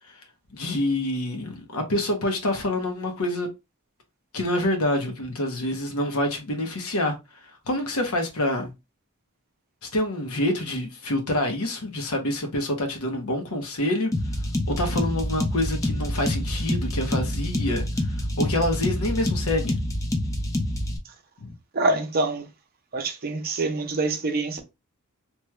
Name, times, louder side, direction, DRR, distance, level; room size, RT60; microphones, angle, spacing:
voice 1, 0.5-3.5 4.3-7.2 7.5-8.7 9.9-14.1 14.7-19.8 21.4-21.5, left 1 dB, 70° left, 0.9 m, -27 dB
sound 1, 14.1-21.0, left 1 dB, 15° left, 0.4 m, -27 dB
voice 2, 21.7-22.5 22.9-24.6, right 3 dB, 40° right, 0.6 m, -25 dB
3.1 x 2.3 x 3.0 m
head